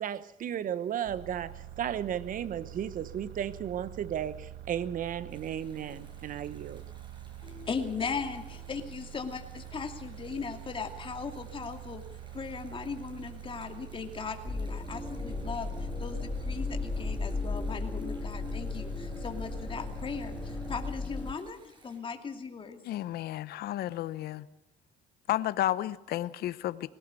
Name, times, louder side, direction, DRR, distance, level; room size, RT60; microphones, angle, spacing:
voice 1, 0.0-6.8, right 9 dB, 55° right, 16 dB, 1.1 m, -34 dB
sound 1, 1.0-20.9, right 11 dB, 80° right, 1.3 m, -46 dB
sound 2, 5.3-22.0, right 1 dB, 30° right, 6.1 m, -61 dB
voice 2, 7.4-12.0 12.3-22.8, left 5 dB, 30° left, 6 dB, 2.5 m, -38 dB
sound 3, 14.5-21.3, left 3 dB, 10° left, 2.0 m, -35 dB
voice 3, 22.9-24.4 25.3-26.9, left 13 dB, 70° left, 16 dB, 0.8 m, -32 dB
20.5 x 17.0 x 8.3 m, 0.86 s
cardioid pair, 110°, 17 cm